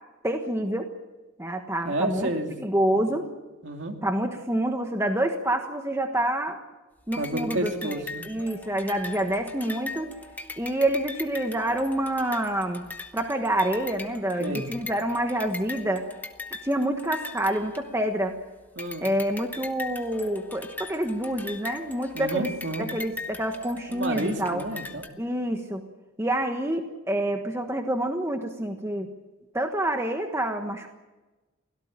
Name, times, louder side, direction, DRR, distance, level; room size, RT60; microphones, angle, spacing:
voice 1, 0.2-0.9 1.4-2.3 2.6-3.3 4.0-6.6 7.1-7.7 8.3-10.1 10.6-12.9 13.1-16.1 16.6-18.4 19.0-22.5 22.8-24.6 25.2-25.8 26.2-29.1 29.5-30.9, right 1 dB, 10° right, 4 dB, 1.3 m, -27 dB
voice 2, 1.8-2.5 3.0-3.1 3.6-4.0 7.2-8.3 14.4-14.6 18.8-19.1 22.1-22.9 23.9-25.1, right 1 dB, 60° right, 3 dB, 2.7 m, -30 dB
sound 1, 7.1-18.3 18.8-25.1, left 3 dB, 10° left, 1.2 m, -40 dB
24.0 x 17.5 x 8.9 m, 1.2 s
head